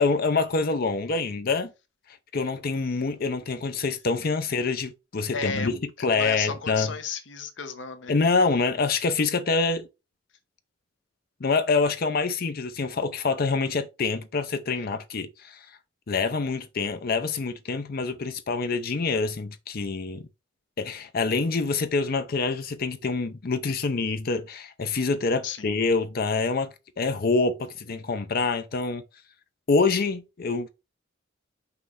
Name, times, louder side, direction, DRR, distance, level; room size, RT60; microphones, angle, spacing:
voice 1, 0.0-1.7 2.3-6.9 8.1-9.9 11.4-15.7 16.1-20.2 20.8-26.7 27.0-29.0 29.7-30.7, left 4 dB, 50° left, 0.6 m, -26 dB
voice 2, 5.3-5.7 6.0-8.1 25.4-25.7, left 5 dB, 75° left, 1.0 m, -33 dB
5.7 x 3.2 x 5.5 m
head